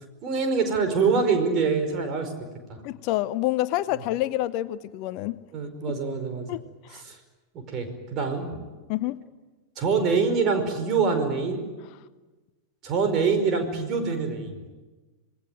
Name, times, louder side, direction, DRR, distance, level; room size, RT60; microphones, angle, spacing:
voice 1, 0.2-2.3 5.5-6.5 6.9-7.2 7.7-8.6 9.8-11.7 12.8-14.6, right 5 dB, 35° right, 6 dB, 5.0 m, -25 dB
voice 2, 2.8-5.4 6.5-6.6 6.9-7.0 8.9-9.2, left 15 dB, 45° left, 16 dB, 0.8 m, -27 dB
27.0 x 20.0 x 9.2 m, 1.2 s
figure-of-eight pair, 90°, 0 cm